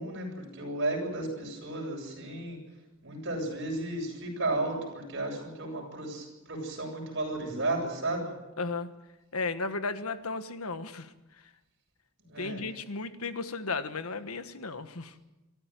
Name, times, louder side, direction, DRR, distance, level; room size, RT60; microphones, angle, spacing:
voice 1, 0.0-2.6 3.0-8.3 12.3-12.6, right 2 dB, 55° right, 0 dB, 7.5 m, -33 dB
voice 2, 8.6-8.9 9.3-11.1 12.4-15.1, left 3 dB, 85° left, 11 dB, 1.4 m, -34 dB
23.0 x 14.0 x 9.2 m, 1.0 s
head